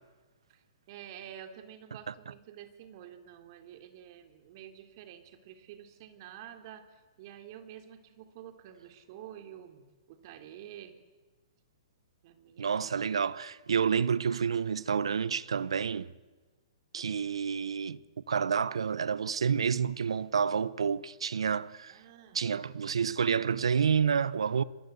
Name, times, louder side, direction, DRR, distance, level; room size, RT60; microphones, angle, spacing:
voice 1, 0.5-11.0 12.2-12.9 21.9-22.4, right 10 dB, 45° right, 3.3 m, -49 dB
voice 2, 12.6-16.1 16.9-18.0 18.3-22.0 22.3-24.6, right 6 dB, 80° right, 1.0 m, -29 dB
28.0 x 23.0 x 8.1 m
hypercardioid pair, 130°, 3 cm